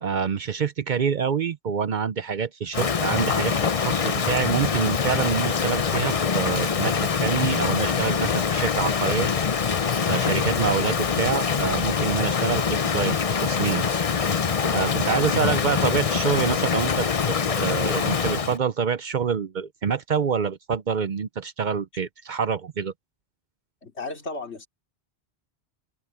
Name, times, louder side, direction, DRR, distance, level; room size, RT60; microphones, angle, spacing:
voice 1, 0.0-9.3 9.7-13.9 14.7-22.9, right 6 dB, 50° right, 0.7 m, -27 dB
Rain, 2.7-18.6, left 6 dB, 40° left, 0.7 m, -24 dB
voice 2, 23.8-24.7, left 3 dB, 80° left, 3.2 m, -35 dB
omnidirectional pair, 1.1 m